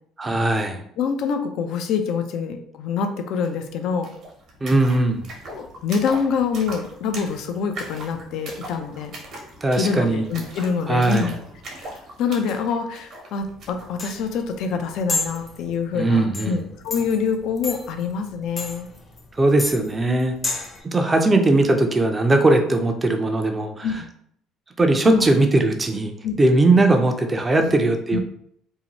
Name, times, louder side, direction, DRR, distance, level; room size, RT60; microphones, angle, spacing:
voice 1, 0.2-0.8 4.6-5.2 9.6-10.2 10.9-11.3 15.9-16.6 19.4-20.4 20.9-23.9 24.8-28.2, right 2 dB, 25° right, 5 dB, 0.4 m, -19 dB
voice 2, 1.0-4.1 5.5-9.1 9.8-11.3 11.7-11.9 12.2-18.9 23.8-23.9 25.0-25.3 26.2-26.4 27.6-27.7 28.1-28.2, left 6 dB, 70° left, 6 dB, 0.4 m, -25 dB
sound 1, 3.4-3.5 3.7-13.9, right 2 dB, 60° right, 0.9 m, -40 dB
sound 2, 13.4-20.8, left 2 dB, 30° left, 0.6 m, -32 dB
2.7 x 2.1 x 2.9 m, 0.68 s
supercardioid pair, 80°, 0 cm